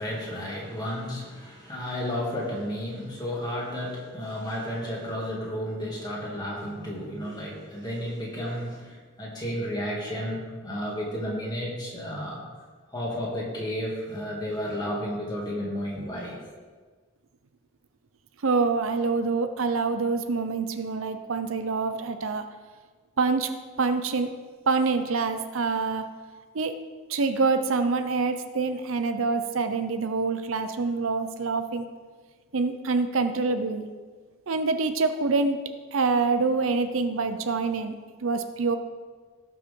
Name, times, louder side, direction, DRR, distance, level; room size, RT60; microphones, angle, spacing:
voice 1, 0.0-12.4 12.9-16.4, equal, 20° left, -4 dB, 2.5 m, -32 dB
voice 2, 18.4-22.4 23.2-23.5 23.8-24.3 24.7-26.1 26.5-26.8 27.1-31.9 32.5-33.9 34.5-35.6 35.9-38.0 38.2-38.8, right 4 dB, 70° right, 8 dB, 0.6 m, -26 dB
17.0 x 6.1 x 3.8 m, 1.5 s
head